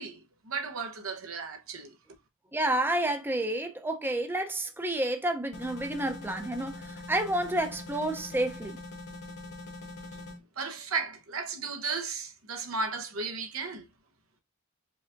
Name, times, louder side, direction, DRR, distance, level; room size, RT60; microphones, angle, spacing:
voice 1, 0.0-2.0 10.1-10.2 10.6-13.9, right 4 dB, 75° right, 1.0 m, -35 dB
voice 2, 2.5-8.8, right 1 dB, 10° right, 0.6 m, -30 dB
sound 1, 5.5-10.4, left 2 dB, 55° left, 1.4 m, -43 dB
5.0 x 3.5 x 2.5 m
head